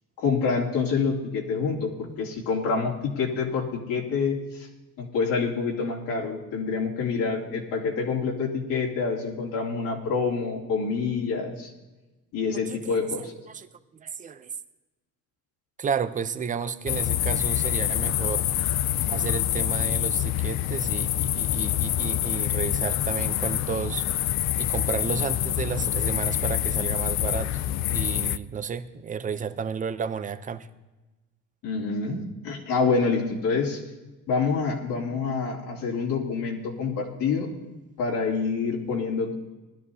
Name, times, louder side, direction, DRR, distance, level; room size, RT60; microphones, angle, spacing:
voice 1, 0.2-4.7 5.0-11.7 12.3-13.3 31.6-33.8 34.3-37.5 38.0-39.3, left 5 dB, 85° left, -4 dB, 2.8 m, -27 dB
voice 2, 12.7-13.7 13.9-14.5 15.8-18.5 19.1-24.1 24.6-27.6 27.9-30.7, right 6 dB, 25° right, 11 dB, 0.6 m, -32 dB
sound 1, 16.9-28.4, left 12 dB, 55° left, 0.5 m, -26 dB
20.0 x 12.0 x 2.8 m, 1.1 s
cardioid pair, 145°, 33 cm